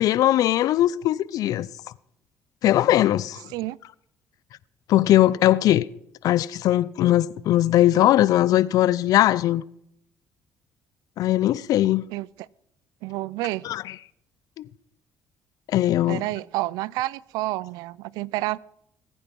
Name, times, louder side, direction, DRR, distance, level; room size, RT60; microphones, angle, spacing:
voice 1, 0.0-1.7 2.6-3.4 4.9-5.9 6.2-9.6 11.2-12.1 13.6-13.8 14.6-14.7 15.7-16.2, left 13 dB, 70° left, 0.6 m, -20 dB
voice 2, 13.0-13.7 16.1-18.6, right 18 dB, 85° right, 0.4 m, -29 dB
21.0 x 9.2 x 5.4 m
supercardioid pair, 70°, 6 cm